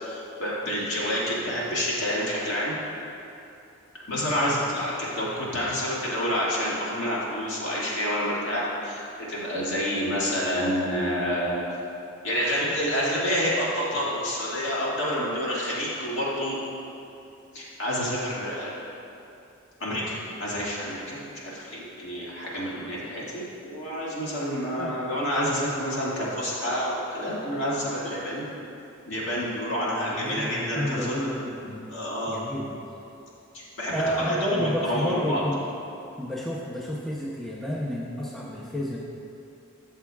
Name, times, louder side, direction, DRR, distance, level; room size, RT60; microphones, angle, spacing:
voice 1, 0.0-2.7 4.1-9.0 9.3-11.5 12.2-16.6 17.5-18.7 19.8-28.4 29.1-31.3 31.9-32.4 33.5-35.4, equal, 60° left, -7 dB, 2.0 m, -28 dB
voice 2, 24.8-25.1 29.9-31.9 32.3-32.7 33.9-35.6 36.2-39.0, equal, ahead, -5 dB, 0.5 m, -30 dB
13.0 x 7.0 x 2.3 m, 2.7 s
head